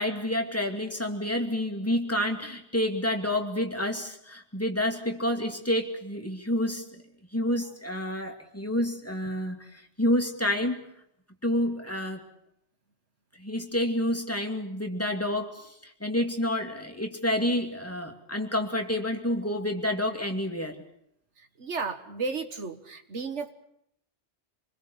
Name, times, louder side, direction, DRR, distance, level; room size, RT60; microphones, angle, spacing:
voice 1, 0.0-7.0 7.3-10.8 11.4-12.2 13.4-20.8, left 1 dB, 10° left, 4 dB, 2.5 m, -29 dB
voice 2, 21.6-23.5, right 4 dB, 85° right, 8 dB, 1.9 m, -33 dB
27.0 x 21.0 x 6.9 m, 0.73 s
omnidirectional pair, 1.2 m